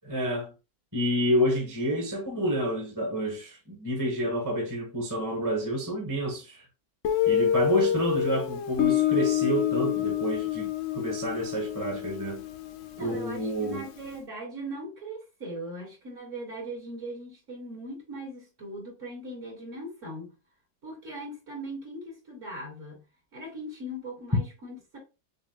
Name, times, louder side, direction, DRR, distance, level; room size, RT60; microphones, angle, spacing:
voice 1, 0.0-0.5 0.9-6.6 7.3-10.7 10.9-12.4 13.0-13.9, equal, 10° right, 1.2 m, -29 dB
Guitar, 7.0-13.7, left 10 dB, 65° left, 0.8 m, -27 dB
voice 2, 13.0-20.3 20.8-23.0 23.3-25.0, right 1 dB, 45° right, 2.7 m, -39 dB
6.7 x 2.6 x 2.4 m
omnidirectional pair, 1.8 m